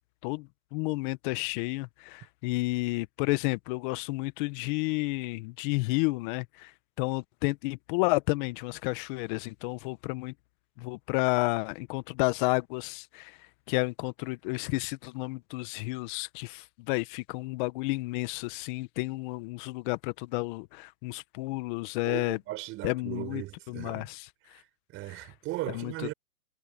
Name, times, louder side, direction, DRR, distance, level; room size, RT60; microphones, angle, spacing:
voice 1, 0.2-6.7 7.0-10.3 10.8-13.4 13.7-22.4 22.8-24.2 25.7-26.1, left 24 dB, 35° left, 1.6 m, -31 dB
voice 2, 22.0-24.1 24.5-26.1, right 18 dB, 30° right, 5.8 m, -38 dB
hypercardioid pair, 135°, 43 cm